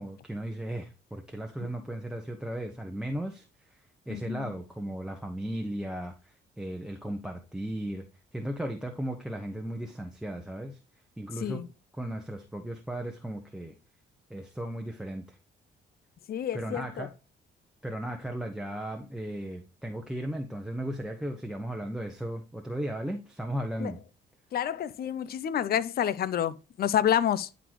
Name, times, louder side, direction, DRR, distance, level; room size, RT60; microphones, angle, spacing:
voice 1, 0.0-3.4 3.7-3.8 4.1-8.0 8.3-10.8 11.2-11.6 11.9-13.7 14.3-15.4 16.5-17.1 17.8-24.0, right 1 dB, 5° right, 1.1 m, -36 dB
voice 2, 4.1-4.5 11.4-11.7 16.3-17.1 23.8-23.9 24.5-27.5, left 10 dB, 50° left, 0.5 m, -29 dB
11.0 x 4.0 x 3.0 m
cardioid pair, 90°, 20 cm